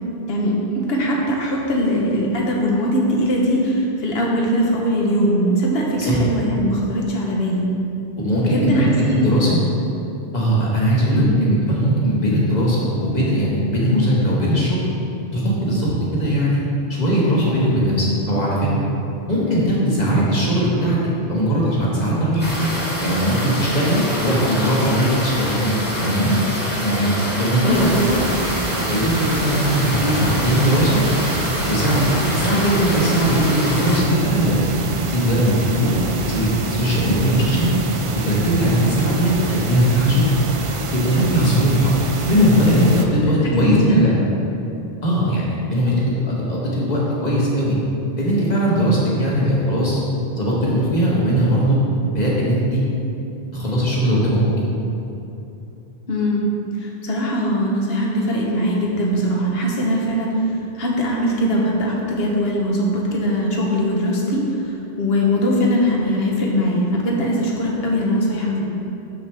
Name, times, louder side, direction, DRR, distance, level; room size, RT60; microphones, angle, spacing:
voice 1, 0.3-7.7 8.4-9.2 11.1-11.3 24.5-24.7 27.6-27.9 43.4-44.0 56.1-56.5 56.8-60.3 60.7-68.6, equal, 70° left, -2 dB, 1.2 m, -21 dB
voice 2, 8.2-9.6 10.3-14.8 15.3-16.6 16.9-18.7 19.3-21.0 21.2-22.7 23.0-26.4 26.8-28.1 28.9-31.0 31.7-34.6 35.1-35.9 36.3-37.7 38.2-40.2 41.0-41.9 42.3-44.2 45.0-47.8 48.2-50.0 50.3-51.8 52.1-52.8 53.5-54.4, equal, 40° left, -6 dB, 1.5 m, -19 dB
sound 1, 22.4-34.0, equal, 10° left, 1.3 m, -26 dB
sound 2, 27.7-43.0, right 3 dB, 50° right, 0.3 m, -26 dB
6.6 x 6.6 x 3.4 m, 2.9 s
omnidirectional pair, 1.1 m